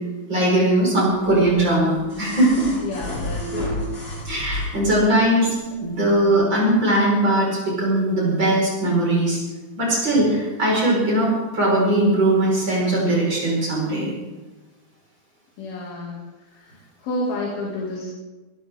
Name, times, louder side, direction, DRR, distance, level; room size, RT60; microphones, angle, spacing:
voice 1, 0.3-2.7 4.2-9.4 9.8-14.1, right 1 dB, 30° right, -4 dB, 5.5 m, -20 dB
sound 1, 1.2-5.0 6.3-6.4, left 1 dB, 30° left, 5.5 m, -31 dB
voice 2, 2.8-3.8 15.6-16.2 16.5-18.1, left 2 dB, 75° left, -4 dB, 4.3 m, -30 dB
24.5 x 12.5 x 3.7 m, 1.2 s
omnidirectional pair, 4.3 m